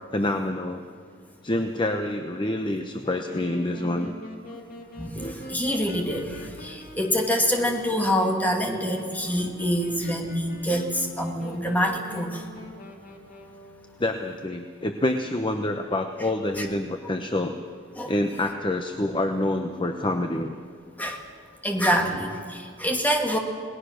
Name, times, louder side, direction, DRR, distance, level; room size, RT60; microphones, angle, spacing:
voice 1, 0.1-0.8 1.4-4.1 5.2-5.6 6.9-7.0 14.0-17.5 18.1-20.6, left 1 dB, 25° left, 6 dB, 0.9 m, -27 dB
Wind instrument woodwind instrument, 3.0-13.9, left 1 dB, 45° left, 2.5 m, -43 dB
voice 2, 5.0-12.4 16.6-16.7 18.0-18.1 21.0-21.2 21.6-23.4, equal, 10° left, 1 dB, 2.4 m, -26 dB
28.5 x 19.5 x 6.5 m, 2.1 s
head